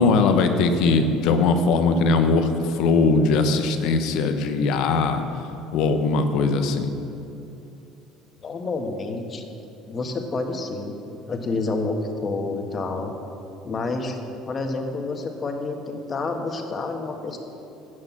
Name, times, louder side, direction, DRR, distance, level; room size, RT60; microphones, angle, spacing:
voice 1, 0.0-5.4 5.7-6.9, left 4 dB, 70° left, 7 dB, 0.9 m, -20 dB
voice 2, 8.4-9.4 9.9-11.0 11.3-13.1 13.6-14.2 14.4-17.4, left 3 dB, 35° left, 4 dB, 1.5 m, -28 dB
11.0 x 6.5 x 7.4 m, 2.8 s
hypercardioid pair, 75°, 0 cm